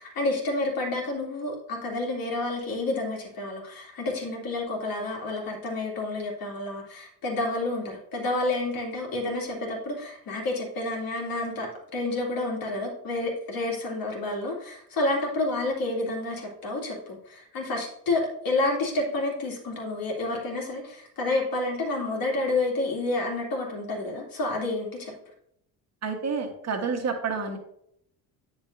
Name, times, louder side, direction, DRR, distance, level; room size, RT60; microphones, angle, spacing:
voice 1, 0.0-25.1, left 2 dB, 55° left, -1 dB, 2.6 m, -29 dB
voice 2, 26.0-27.6, right 5 dB, 40° right, 4 dB, 1.5 m, -29 dB
8.1 x 6.6 x 2.7 m, 0.73 s
supercardioid pair, 85°, 41 cm